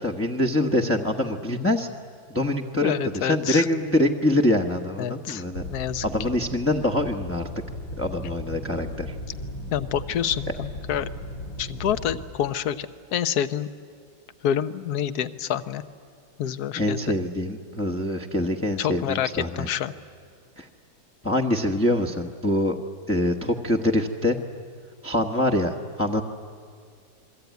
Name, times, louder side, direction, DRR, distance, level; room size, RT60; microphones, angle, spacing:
voice 1, 0.0-1.9 2.3-5.6 6.0-7.5 8.0-9.1 16.7-19.7 20.6-20.7 21.2-22.8 23.1-24.4 25.0-26.2, left 1 dB, 10° left, 1 dB, 0.9 m, -24 dB
voice 2, 2.8-3.7 5.0-5.4 5.7-6.0 9.7-11.1 11.6-13.7 14.4-15.8 16.4-17.1 18.8-19.9, left 9 dB, 60° left, 13 dB, 1.3 m, -27 dB
sound 1, 5.5-12.1, equal, 85° left, 6.1 m, -36 dB
28.5 x 22.5 x 9.4 m, 2.1 s
omnidirectional pair, 2.0 m